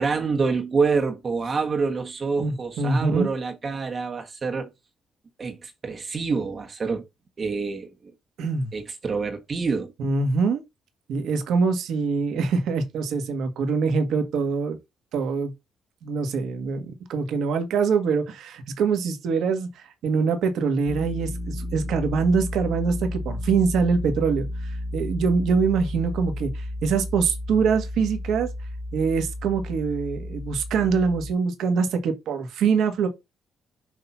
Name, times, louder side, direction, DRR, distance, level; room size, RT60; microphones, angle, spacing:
voice 1, 0.0-4.7 5.4-7.1 7.4-8.1 8.7-9.9, right 4 dB, 40° right, 1.3 m, -27 dB
voice 2, 2.4-3.3 8.4-8.7 10.0-10.6 11.1-14.8 15.1-15.5 16.0-28.5 28.9-33.1, right 5 dB, 80° right, 1.5 m, -24 dB
sound 1, 20.9-31.3, left 1 dB, 25° left, 2.0 m, -33 dB
6.6 x 2.8 x 5.6 m
cardioid pair, 90°, 0 cm